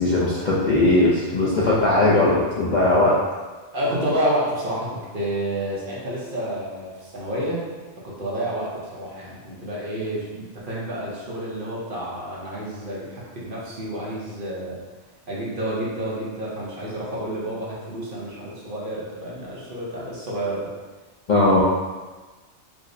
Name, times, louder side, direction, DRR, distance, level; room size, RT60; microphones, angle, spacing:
voice 1, 0.0-3.2 21.3-21.6, left 2 dB, 55° left, -7 dB, 0.5 m, -19 dB
voice 2, 3.7-7.6 8.0-14.8 15.3-20.7, right 1 dB, 50° right, -6 dB, 0.9 m, -29 dB
4.7 x 2.0 x 2.6 m, 1.3 s
omnidirectional pair, 1.2 m